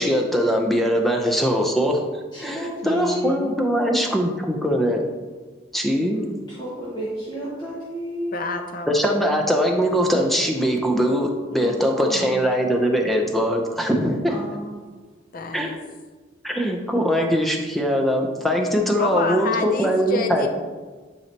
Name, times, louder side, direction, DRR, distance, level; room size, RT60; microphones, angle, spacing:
voice 1, 0.0-2.1 2.4-5.1 5.7-6.3 8.9-14.3 15.5-15.8 16.4-20.5, equal, ahead, 1 dB, 0.7 m, -21 dB
voice 2, 2.3-3.4 6.1-8.3 11.6-12.3 14.3-14.8, equal, 25° left, -10 dB, 1.7 m, -32 dB
voice 3, 2.8-3.6 8.3-9.0 15.3-15.8 19.0-20.5, left 3 dB, 45° left, 5 dB, 0.6 m, -28 dB
11.0 x 4.8 x 3.0 m, 1.4 s
head